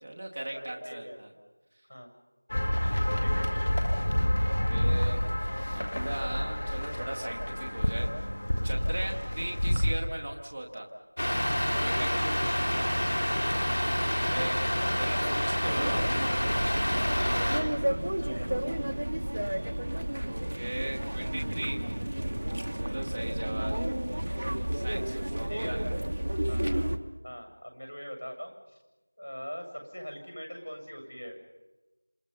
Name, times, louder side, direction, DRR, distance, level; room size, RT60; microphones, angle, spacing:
voice 1, 0.0-1.3 2.6-3.2 4.4-5.2 5.7-8.1 8.6-10.9 11.8-12.5 14.2-14.6 15.0-16.0 20.2-21.8 22.8-23.7 24.7-25.9, right 1 dB, 15° right, 0 dB, 1.0 m, -38 dB
voice 2, 0.5-1.1 1.9-2.1 3.2-3.7 9.0-9.3 11.7-12.4 14.6-15.2 15.9-16.0 16.9-18.6 22.8-23.2 25.5-25.8 26.5-26.9 27.2-28.8 29.2-31.4, equal, 85° left, 3 dB, 7.8 m, -42 dB
sound 1, 2.5-9.9, equal, 35° left, 1.8 m, -28 dB
Truck, 11.2-17.6, equal, 70° left, 3.8 m, -28 dB
sound 2, 15.6-27.0, right 1 dB, 40° right, 1.1 m, -32 dB
27.5 x 27.5 x 5.6 m, 1.1 s
figure-of-eight pair, 180°, 0 cm